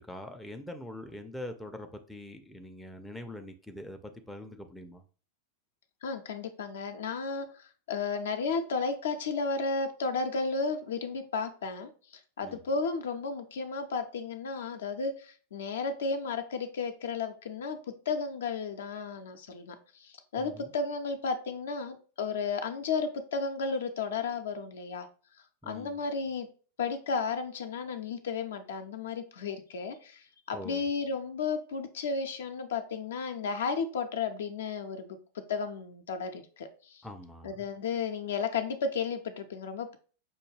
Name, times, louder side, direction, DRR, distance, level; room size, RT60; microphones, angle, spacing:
voice 1, 0.0-5.0 12.4-12.6 20.4-20.7 25.6-26.0 30.5-30.8 37.0-37.6, left 1 dB, 5° left, 5 dB, 0.4 m, -43 dB
voice 2, 6.0-11.9 12.4-19.8 20.0-25.1 25.6-26.5 26.8-35.2 35.5-37.0 37.4-40.0, left 4 dB, 60° left, 7 dB, 0.5 m, -33 dB
5.3 x 2.2 x 3.2 m, 0.39 s
figure-of-eight pair, 90°, 0 cm